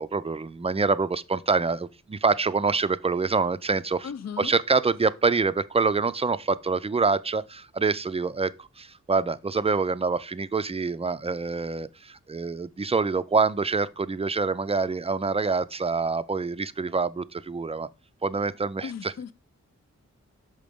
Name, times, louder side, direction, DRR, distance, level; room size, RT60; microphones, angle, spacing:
voice 1, 0.0-4.1 4.4-17.9 18.2-19.1, right 4 dB, 20° right, 0.3 m, -26 dB
voice 2, 4.0-4.5 18.8-19.3, left 7 dB, 65° left, 0.5 m, -36 dB
6.7 x 5.1 x 3.5 m
wide cardioid pair, 65°, 29 cm